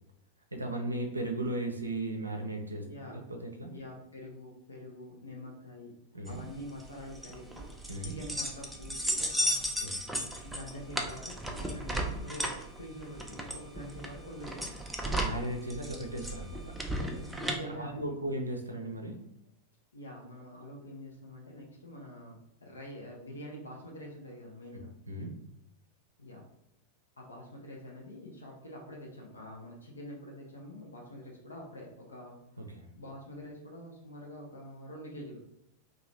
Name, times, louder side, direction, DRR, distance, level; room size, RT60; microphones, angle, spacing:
voice 1, 0.5-3.7 6.1-6.4 7.9-8.1 9.8-10.0 15.0-16.7 17.6-19.2 25.1-25.4 32.6-32.9, right 1 dB, 80° right, 3 dB, 0.5 m, -36 dB
voice 2, 2.8-3.2 3.7-5.9 6.2-7.7 8.0-9.6 10.4-14.7 17.0-18.2 19.9-24.9 26.2-26.4 27.2-32.4 32.9-35.4, left 1 dB, 75° left, -1 dB, 0.6 m, -46 dB
sound 1, 6.3-17.6, equal, 5° right, 0.4 m, -35 dB
2.7 x 2.3 x 3.2 m, 0.80 s
figure-of-eight pair, 90°, 0 cm